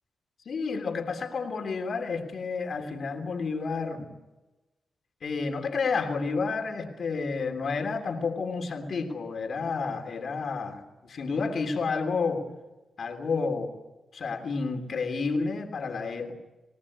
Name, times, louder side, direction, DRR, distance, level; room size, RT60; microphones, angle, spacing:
voice 1, 0.4-4.1 5.2-12.5 13.0-13.8 14.1-16.3, left 4 dB, 65° left, 5 dB, 3.3 m, -30 dB
26.5 x 18.0 x 8.7 m, 1.1 s
cardioid pair, 85°, 0 cm